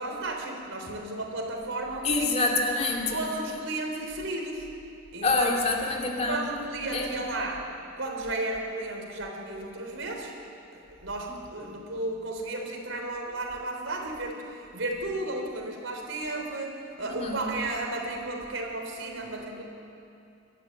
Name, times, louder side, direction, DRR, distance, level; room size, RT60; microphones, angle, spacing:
voice 1, 0.0-2.3 3.1-4.7 5.1-5.6 6.3-7.6 8.0-10.3 10.7-19.6, right 2 dB, 85° right, 2 dB, 3.8 m, -34 dB
voice 2, 2.0-3.2 5.2-6.4 6.9-7.2 11.3-11.4 17.2-17.4, left 3 dB, 35° left, 0 dB, 2.7 m, -26 dB
22.5 x 13.0 x 9.4 m, 2.6 s
head